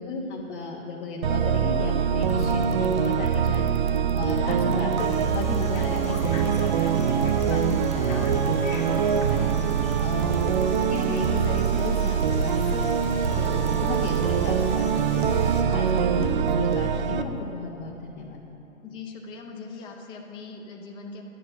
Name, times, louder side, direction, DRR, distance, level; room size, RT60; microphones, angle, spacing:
voice 1, 0.0-3.7 4.1-9.5 10.0-10.5 10.8-12.9 13.3-18.4, left 3 dB, 45° left, -3 dB, 1.2 m, -34 dB
sound 1, 1.2-17.2, right 7 dB, 40° right, 0.5 m, -24 dB
sound 2, 2.3-14.3, right 5 dB, 85° right, 0.9 m, -39 dB
sound 3, 5.0-15.6, left 3 dB, 80° left, 1.8 m, -40 dB
voice 2, 18.8-21.2, left 4 dB, 10° left, 2 dB, 0.5 m, -41 dB
11.0 x 6.3 x 7.1 m, 2.9 s
hypercardioid pair, 130°, 40 cm